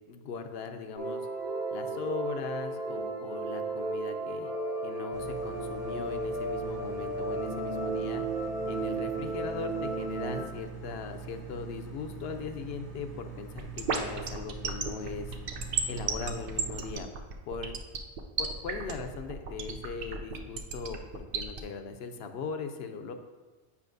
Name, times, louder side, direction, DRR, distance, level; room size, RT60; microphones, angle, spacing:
voice 1, 0.1-1.3 1.7-4.5 4.8-8.2 8.7-13.5 13.8-15.3 15.9-17.1 17.5-17.7 18.4-23.1, left 5 dB, 70° left, 7 dB, 0.8 m, -39 dB
sound 1, 1.0-10.4, right 2 dB, 20° right, 0.9 m, -34 dB
sound 2, 5.1-16.9, right 5 dB, 75° right, 1.4 m, -44 dB
sound 3, 13.6-21.6, right 6 dB, 60° right, 0.8 m, -32 dB
8.4 x 5.6 x 2.6 m, 1.3 s
omnidirectional pair, 1.1 m